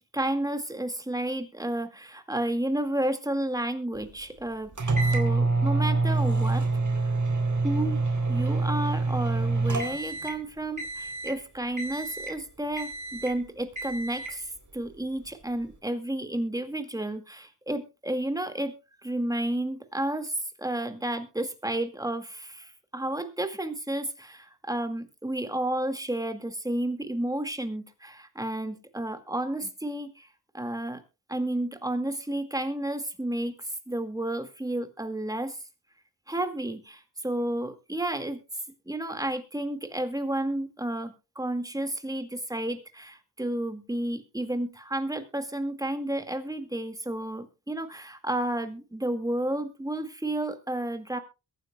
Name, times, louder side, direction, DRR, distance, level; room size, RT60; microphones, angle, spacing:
voice 1, 0.1-4.7 5.1-6.7 7.6-8.0 8.3-18.7 19.0-30.3 30.5-31.0 31.3-35.6 36.3-38.4 38.9-51.2, right 1 dB, 10° right, 7 dB, 2.0 m, -31 dB
sound 1, 4.8-10.4 10.8-11.4 11.8-12.4 12.8-13.4 13.8-14.4, right 3 dB, 50° right, 3.6 m, -27 dB
22.5 x 9.7 x 2.3 m, 0.28 s
wide cardioid pair, 90°, 39 cm